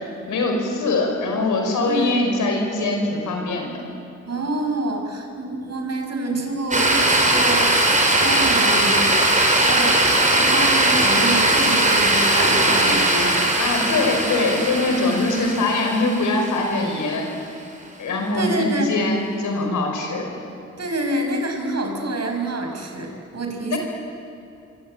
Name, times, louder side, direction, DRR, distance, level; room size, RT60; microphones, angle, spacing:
voice 1, 0.3-3.7 13.6-17.2 18.0-20.4 23.7-23.8, left 2 dB, 90° left, 2 dB, 5.1 m, -22 dB
voice 2, 1.8-2.3 4.3-7.8 8.2-9.2 9.6-10.0 10.2-13.4 18.3-18.9 20.8-23.8, right 2 dB, 60° right, 3 dB, 6.1 m, -26 dB
sound 1, 6.7-17.0, right 1 dB, 25° right, 5.5 m, -19 dB
26.5 x 24.0 x 8.9 m, 2.6 s
cardioid pair, 50°, 30 cm